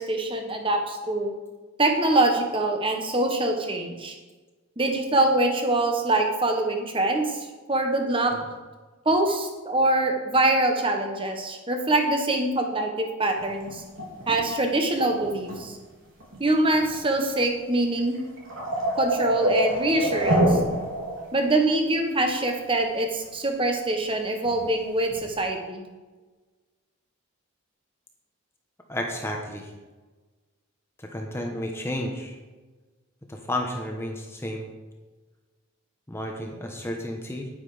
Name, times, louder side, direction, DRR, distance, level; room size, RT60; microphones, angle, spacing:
voice 1, 0.0-1.3 1.8-4.1 4.8-8.3 9.0-13.8 14.3-15.8 16.4-18.2 18.9-20.6 21.3-25.8, right 2 dB, 25° right, 4 dB, 1.4 m, -24 dB
sound 1, 13.4-14.5 15.0-15.7 16.2-16.4 16.7-16.9 17.4-17.5 18.0-21.3 21.7-21.8 24.0-24.1 24.4-24.6 25.1-25.3, right 1 dB, 70° right, 3.6 m, -26 dB
voice 2, 28.9-29.7 31.0-32.4 33.3-34.7 36.1-37.5, left 1 dB, 10° left, 1 dB, 1.1 m, -32 dB
9.9 x 9.5 x 5.1 m, 1.3 s
head